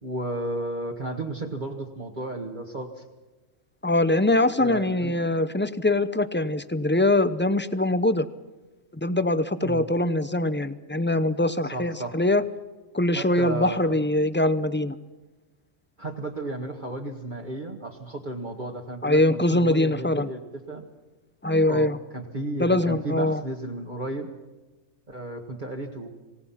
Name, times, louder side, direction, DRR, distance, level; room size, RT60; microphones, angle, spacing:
voice 1, 0.0-3.0 4.6-5.2 9.6-9.9 11.7-12.2 13.1-13.9 16.0-20.8 21.7-24.3 25.1-26.1, right 2 dB, 35° right, -1 dB, 1.9 m, -33 dB
voice 2, 3.8-8.3 9.0-12.4 12.9-15.0 19.0-20.3 21.4-22.0 22.6-23.4, left 1 dB, 15° left, 13 dB, 0.5 m, -23 dB
27.5 x 17.5 x 5.8 m, 1.2 s
omnidirectional pair, 1.4 m